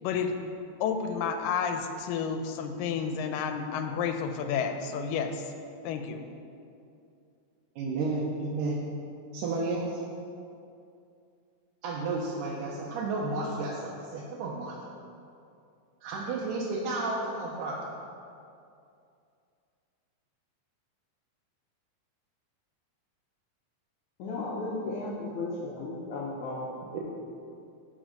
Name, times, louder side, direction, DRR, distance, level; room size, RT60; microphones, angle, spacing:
voice 1, 0.0-0.3 0.8-5.4 5.8-6.3, left 6 dB, 90° left, 6 dB, 2.3 m, -31 dB
voice 2, 7.8-8.8 9.3-10.0 11.8-14.7 16.0-17.8 26.9-27.0, right 3 dB, 75° right, -5 dB, 2.3 m, -32 dB
voice 3, 24.2-27.0, left 2 dB, 70° left, -5 dB, 2.0 m, -35 dB
10.5 x 4.6 x 5.2 m, 2.5 s
omnidirectional pair, 3.9 m